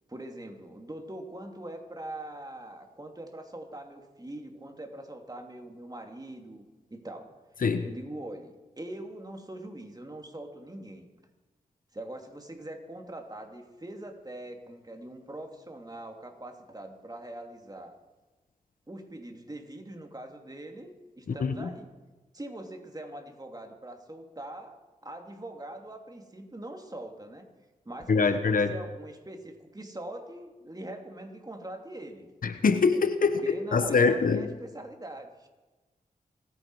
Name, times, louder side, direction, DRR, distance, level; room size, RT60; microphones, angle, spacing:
voice 1, 0.1-7.3 7.8-11.1 11.9-17.9 18.9-21.9 22.3-27.5 27.8-32.3 33.2-35.5, right 1 dB, 25° right, 4 dB, 2.8 m, -42 dB
voice 2, 21.3-21.7 28.1-28.7 32.4-34.5, left 4 dB, 65° left, 10 dB, 1.1 m, -24 dB
26.0 x 9.7 x 4.8 m, 1.2 s
cardioid pair, 45°, 15 cm